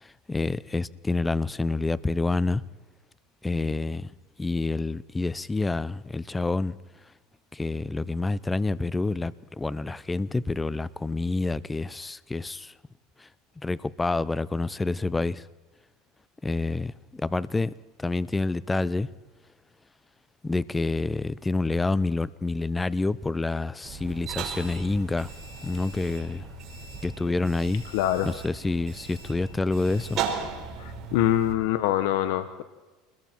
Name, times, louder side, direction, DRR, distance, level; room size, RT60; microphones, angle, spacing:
voice 1, 0.0-2.6 3.4-4.1 4.4-6.7 7.5-12.7 13.2-13.3 13.6-15.4 16.4-17.7 18.0-19.1 20.4-25.3 25.6-26.5 27.0-27.8 28.2-30.2, left 3 dB, 10° left, 0.6 m, -28 dB
sound 1, 23.8-31.5, right 6 dB, 40° right, 5.1 m, -37 dB
voice 2, 27.9-28.3 30.8-32.6, left 12 dB, 75° left, 1.1 m, -24 dB
27.5 x 21.5 x 4.5 m
supercardioid pair, 125°, 0 cm